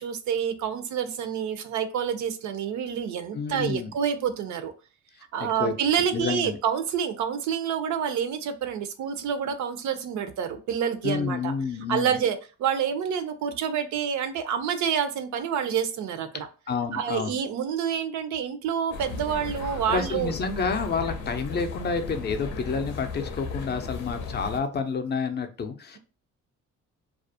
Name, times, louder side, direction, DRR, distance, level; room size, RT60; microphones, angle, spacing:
voice 1, 0.0-4.7 5.3-11.5 11.9-16.5 16.9-20.3, right 8 dB, 75° right, 10 dB, 0.5 m, -28 dB
voice 2, 3.3-3.9 5.6-5.7 6.1-6.6 11.0-12.2 16.7-17.3 19.9-26.0, left 5 dB, 35° left, 7 dB, 0.4 m, -29 dB
sound 1, 18.9-24.6, left 4 dB, 80° left, 0.6 m, -36 dB
2.4 x 2.0 x 2.6 m, 0.35 s
cardioid pair, 90°, 30 cm